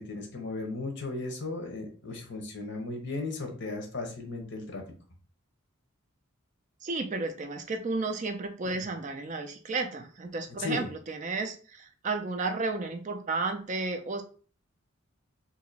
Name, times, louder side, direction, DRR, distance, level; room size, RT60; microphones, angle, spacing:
voice 1, 0.0-4.8 8.7-8.8 10.6-10.9, left 3 dB, 55° left, 3 dB, 0.9 m, -36 dB
voice 2, 6.8-14.2, right 3 dB, 35° right, 6 dB, 0.4 m, -33 dB
2.8 x 2.6 x 3.9 m, 0.39 s
head